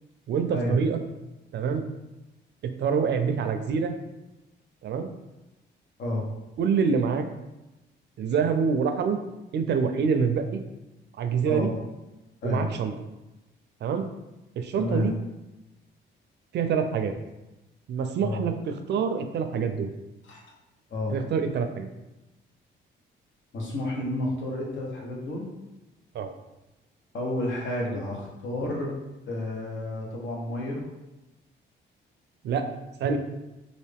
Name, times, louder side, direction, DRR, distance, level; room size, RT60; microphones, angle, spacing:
voice 1, 0.3-1.0 1.5-1.9 2.6-3.9 4.8-5.1 6.6-7.2 8.2-9.2 9.5-10.6 11.2-11.7 12.4-12.9 13.8-14.1 14.6-15.1 16.5-17.1 17.9-19.9 21.1-21.9 26.1-26.3 32.4-32.6 33.0-33.2, right 6 dB, 60° right, 7 dB, 0.4 m, -26 dB
voice 2, 6.0-6.3 11.4-11.8 12.4-12.7 14.7-15.1 18.2-18.4 20.2-20.4 20.9-21.2 23.5-25.5 27.1-28.9 29.3-30.9, left 1 dB, 70° left, -2 dB, 1.0 m, -30 dB
3.2 x 2.5 x 3.4 m, 1.0 s
cardioid pair, 90°, 20 cm